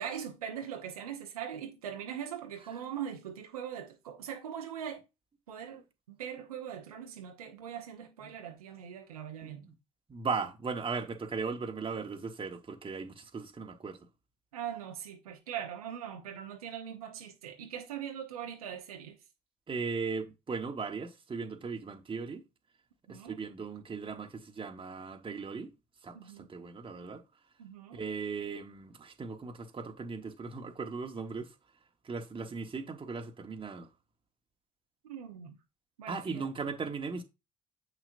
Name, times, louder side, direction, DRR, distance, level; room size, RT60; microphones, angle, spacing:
voice 1, 0.0-5.0 5.5-5.8 6.1-9.7 14.5-19.2 23.1-23.4 26.1-26.5 27.6-28.0 35.0-35.6 36.0-36.5, right 9 dB, 80° right, 1.0 m, -41 dB
voice 2, 10.1-14.0 19.7-22.4 23.1-25.7 26.0-26.2 26.5-27.2 27.9-31.5 32.0-33.9 36.1-37.2, right 5 dB, 30° right, 1.3 m, -37 dB
8.0 x 5.9 x 2.6 m
figure-of-eight pair, 55°, 19 cm